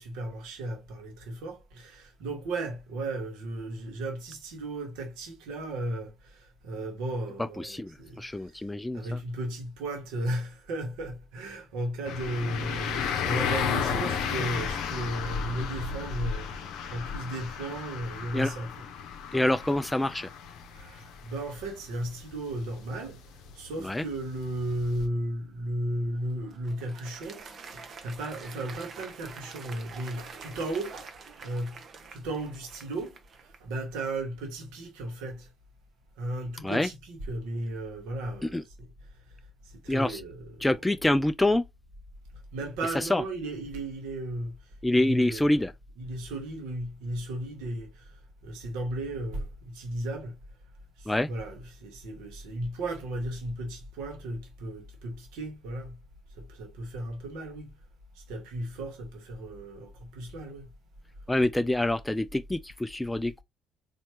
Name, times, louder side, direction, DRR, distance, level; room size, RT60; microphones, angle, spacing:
voice 1, 0.0-8.6 8.9-18.9 20.7-23.2 23.5-27.4 27.7-31.8 32.1-35.5 36.2-39.3 39.6-41.0 42.5-45.6 45.9-50.4 51.0-56.0 56.3-57.7 58.1-60.7, right 1 dB, 65° right, 1.3 m, -35 dB
voice 2, 7.6-9.2 18.3-18.5 19.3-20.3 23.8-24.0 36.6-36.9 38.4-38.6 39.9-40.2 40.6-41.7 42.9-43.2 44.8-45.7 51.1-51.3 61.3-63.4, left 1 dB, 10° left, 0.3 m, -26 dB
sound 1, 12.1-25.1, left 6 dB, 60° left, 0.7 m, -34 dB
Applause, 26.1-33.8, right 5 dB, 45° right, 0.9 m, -46 dB
4.2 x 3.0 x 2.8 m
figure-of-eight pair, 50°, 0 cm